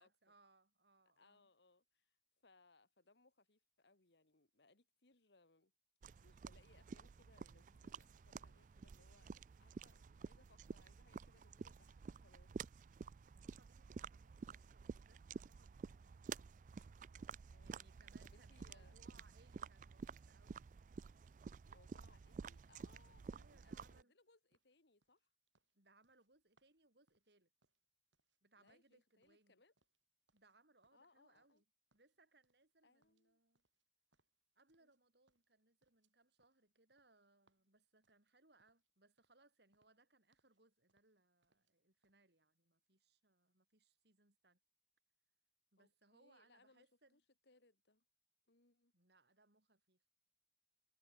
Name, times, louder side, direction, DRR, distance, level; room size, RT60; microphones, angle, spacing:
voice 1, 0.0-1.5 13.3-16.5 17.6-20.6 23.3-24.1 25.7-27.5 28.4-29.6 30.3-31.6 31.9-33.6 34.5-44.6 45.7-47.2 48.9-50.0, right 2 dB, 65° right, 4.8 m, -73 dB
voice 2, 1.2-2.2 2.4-5.7 6.2-12.5 17.4-17.9 18.2-19.0 21.7-25.3 28.6-29.7 30.9-31.6 32.8-33.4 34.8-34.9 45.8-46.9 47.1-48.0 48.5-48.9, left 3 dB, 70° left, 2.2 m, -71 dB
sound 1, 6.0-24.0, right 5 dB, 45° right, 0.3 m, -52 dB
sound 2, 24.5-28.4 28.7-30.6 30.8-31.6 31.9-32.7 33.0-35.0 35.3-38.9 39.2-39.4 39.7-40.6 40.9-41.7 42.0-42.2, right 3 dB, 85° right, 4.7 m, -85 dB
head